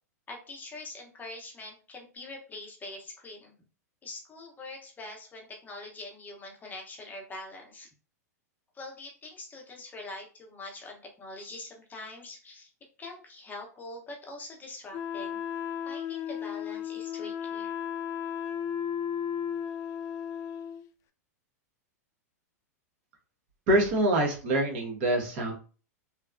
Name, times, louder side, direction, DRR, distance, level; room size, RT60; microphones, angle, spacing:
voice 1, 0.3-3.5 4.0-7.9 8.7-12.7 13.0-15.4 15.9-17.7, left 2 dB, 20° left, 0 dB, 0.8 m, -44 dB
Wind instrument woodwind instrument, 14.9-20.9, left 8 dB, 35° left, 0.3 m, -34 dB
voice 2, 23.7-25.5, right 1 dB, 55° right, 0 dB, 1.2 m, -25 dB
3.0 x 2.2 x 2.5 m, 0.37 s
hypercardioid pair, 105°, 9 cm